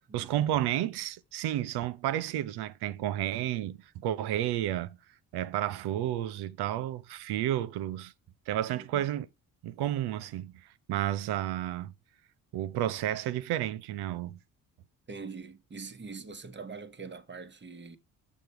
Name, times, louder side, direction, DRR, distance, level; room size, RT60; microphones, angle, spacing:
voice 1, 0.1-5.0 5.3-8.1 8.5-9.3 9.6-11.9 12.5-14.4, right 12 dB, 75° right, 0.7 m, -31 dB
voice 2, 8.7-9.0 15.1-18.0, right 4 dB, 30° right, 1.2 m, -43 dB
7.3 x 6.3 x 4.7 m
supercardioid pair, 60°, 39 cm